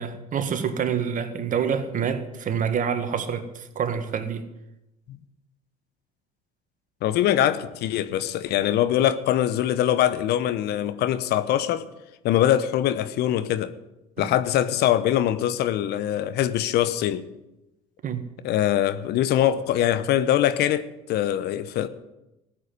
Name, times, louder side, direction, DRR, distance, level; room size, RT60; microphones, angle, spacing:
voice 1, 0.0-4.4 14.2-14.3 18.0-18.3, right 7 dB, 45° right, 1.8 m, -27 dB
voice 2, 7.0-11.8 12.2-13.7 14.2-17.3 18.4-21.9, left 11 dB, 55° left, 1.0 m, -23 dB
15.0 x 7.9 x 9.8 m
hypercardioid pair, 65°, 19 cm